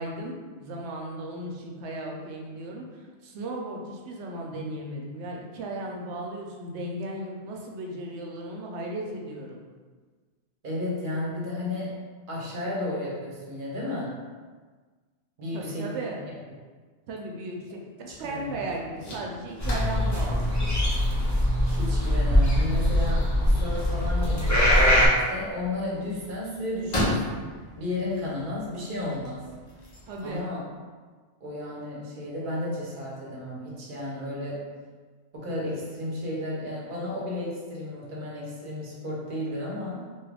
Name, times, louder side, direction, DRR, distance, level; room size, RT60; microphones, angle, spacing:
voice 1, 0.0-9.6 15.5-16.2 17.1-20.5 30.1-30.5, right 1 dB, 80° right, 0 dB, 0.9 m, -36 dB
voice 2, 10.6-12.0 12.3-14.2 15.4-16.0 18.3-18.6 21.6-27.5 27.7-29.5 30.2-30.6 31.4-34.7 35.3-40.0, left 1 dB, 55° right, -5 dB, 0.9 m, -33 dB
sound 1, 18.1-30.4, left 1 dB, 45° left, 0.7 m, -38 dB
sound 2, 19.6-25.1, equal, 30° left, 0.3 m, -22 dB
2.9 x 2.3 x 3.3 m, 1.4 s
omnidirectional pair, 1.2 m